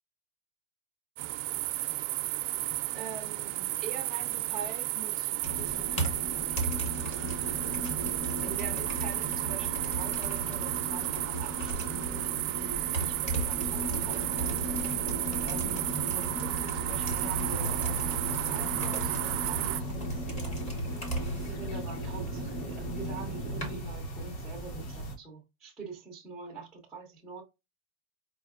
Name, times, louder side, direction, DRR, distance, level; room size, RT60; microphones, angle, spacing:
sound 1, 1.2-19.8, right 17 dB, 75° right, 0.5 m, -33 dB
voice 1, 2.9-7.8 8.4-14.7 15.4-20.6 21.5-27.4, right 4 dB, ahead, 0.5 m, -44 dB
sound 2, 5.4-23.8, right 1 dB, 20° left, 0.9 m, -36 dB
sound 3, 16.9-25.2, right 1 dB, 40° left, 1.0 m, -38 dB
5.1 x 2.6 x 2.4 m
supercardioid pair, 165°, 38 cm